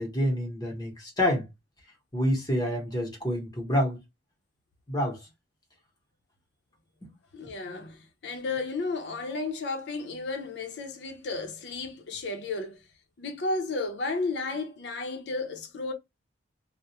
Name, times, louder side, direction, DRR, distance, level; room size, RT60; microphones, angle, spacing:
voice 1, 0.0-1.5 2.1-4.0 4.9-5.2, equal, 20° left, 0.9 m, -27 dB
voice 2, 7.3-12.8 13.2-15.9, left 3 dB, 70° left, 0.6 m, -33 dB
2.3 x 2.1 x 2.7 m
head